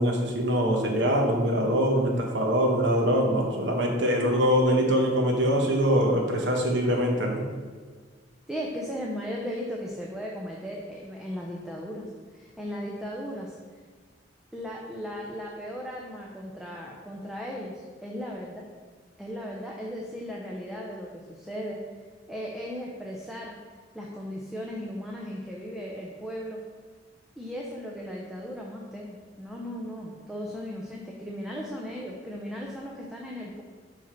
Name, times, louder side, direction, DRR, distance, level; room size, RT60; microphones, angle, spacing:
voice 1, 0.0-7.5, equal, 75° right, 1 dB, 1.1 m, -23 dB
voice 2, 8.5-12.1 12.3-13.5 14.5-18.6 19.2-21.8 22.3-23.6 23.9-26.6 27.4-33.6, equal, ahead, -3 dB, 0.6 m, -36 dB
5.6 x 4.9 x 4.4 m, 1.6 s
head